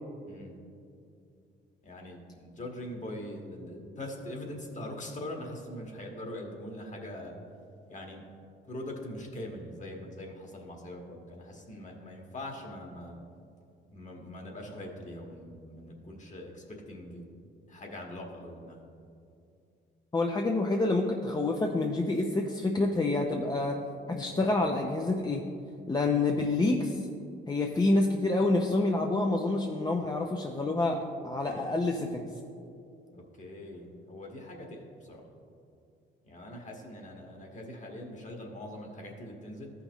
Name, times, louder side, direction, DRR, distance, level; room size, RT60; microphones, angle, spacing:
voice 1, 1.8-7.3 7.9-8.2 8.6-13.2 13.9-17.2 17.7-18.8 33.1-35.2 36.2-39.7, left 1 dB, 40° left, 1 dB, 1.6 m, -42 dB
voice 2, 20.1-23.8 24.1-25.4 25.9-27.1 27.5-32.3, left 2 dB, 20° left, 1 dB, 0.6 m, -28 dB
13.5 x 5.8 x 3.0 m, 2.5 s
cardioid pair, 90°, 20 cm